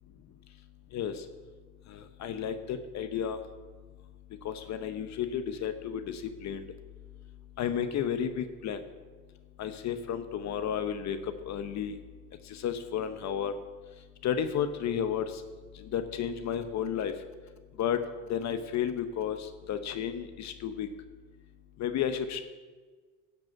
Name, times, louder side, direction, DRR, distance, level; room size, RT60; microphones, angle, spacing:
voice 1, 1.9-3.4 4.4-6.6 7.6-8.8 9.6-11.2 11.5-12.0 12.5-13.5 14.2-15.3 15.9-17.1 17.8-18.0 18.3-20.9 21.8-22.4, left 8 dB, 50° left, 9 dB, 0.8 m, -32 dB
10.5 x 5.4 x 7.4 m, 1.4 s
supercardioid pair, 95°, 35 cm